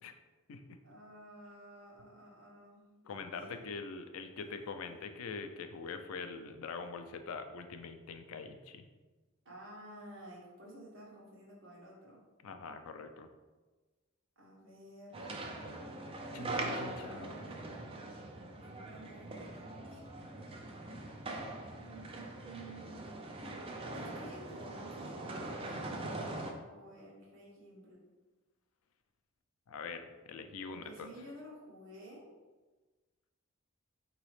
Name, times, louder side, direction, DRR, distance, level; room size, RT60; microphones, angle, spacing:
voice 1, 0.8-3.6 4.3-5.0 9.4-12.2 14.4-15.2 17.2-17.9 18.6-20.0 21.8-23.1 23.9-25.6 26.7-28.0 30.7-32.3, right 1 dB, 65° right, -4 dB, 1.2 m, -52 dB
voice 2, 3.1-8.9 12.4-13.3 16.3-17.7 29.7-31.1, left 4 dB, 85° left, 8 dB, 0.4 m, -44 dB
sound 1, 15.1-26.5, right 2 dB, 25° right, 0.4 m, -42 dB
3.9 x 3.0 x 3.2 m, 1.3 s
head